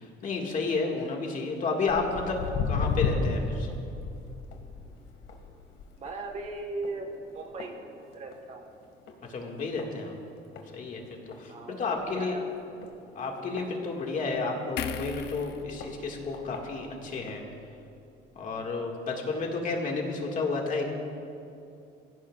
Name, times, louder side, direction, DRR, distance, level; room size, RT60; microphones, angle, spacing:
voice 1, 0.0-3.7 9.3-10.2 10.7-11.0 11.4-12.4 13.1-17.4 18.4-20.9, left 3 dB, 40° left, 0 dB, 2.0 m, -31 dB
Walk footsteps, 1.9-8.6 8.9-9.2 9.8-9.9 10.6-10.7 11.0-11.1 11.3-11.4 12.0-12.2 12.8-14.4 15.0-15.1 15.8-15.9 16.3-16.6 17.3-17.4, left 4 dB, 90° left, 2.0 m, -33 dB
voice 2, 6.0-7.8 8.1-8.6 11.5-12.6 19.3-19.4, right 3 dB, 35° right, 3 dB, 1.5 m, -38 dB
sound 1, 14.8-18.1 18.5-18.7, left 9 dB, 60° left, 0.7 m, -40 dB
24.5 x 16.0 x 2.5 m, 2.7 s
cardioid pair, 160°, 20 cm